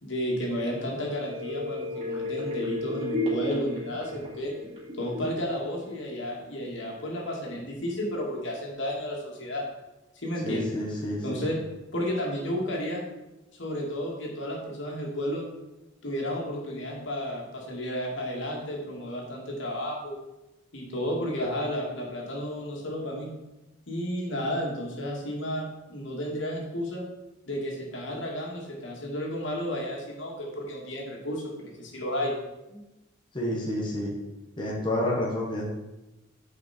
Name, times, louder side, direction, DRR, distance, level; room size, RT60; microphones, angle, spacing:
voice 1, 0.0-4.5 5.0-9.6 10.2-10.8 11.2-11.6 11.9-13.0 13.6-15.4 16.0-20.2 20.7-23.3 23.9-27.0 27.5-32.4 32.7-32.8, equal, 70° left, -2 dB, 2.5 m, -32 dB
sound 1, 1.0-6.6 7.0-7.1, left 1 dB, 30° right, 3.1 m, -34 dB
voice 2, 10.4-11.4 33.3-34.1 34.6-35.7, left 1 dB, 25° left, -4 dB, 1.5 m, -29 dB
10.5 x 5.4 x 4.5 m, 0.99 s
head